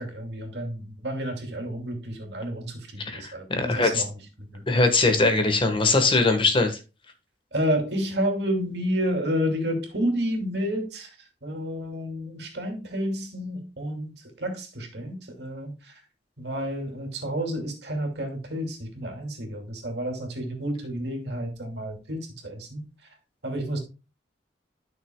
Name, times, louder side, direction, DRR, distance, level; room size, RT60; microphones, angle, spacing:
voice 1, 0.0-4.1 4.5-4.6 7.5-11.1 11.4-14.1 14.4-15.9 16.4-22.8 23.4-23.8, equal, 70° right, 3 dB, 2.5 m, -30 dB
voice 2, 3.0-4.0 4.7-6.8, left 3 dB, 30° left, 6 dB, 1.3 m, -21 dB
12.0 x 6.3 x 2.2 m, 0.29 s
head